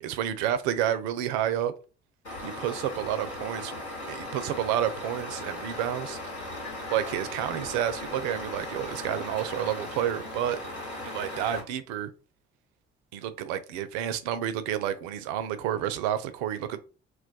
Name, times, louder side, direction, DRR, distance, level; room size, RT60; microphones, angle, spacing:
voice 1, 0.0-1.7 2.4-3.8 4.1-6.2 6.9-10.6 11.0-12.1 13.1-16.8, right 10 dB, 60° right, 0.4 m, -30 dB
Truck, 2.2-11.6, left 1 dB, 80° left, 1.1 m, -37 dB
2.3 x 2.1 x 3.8 m
figure-of-eight pair, 45°, 32 cm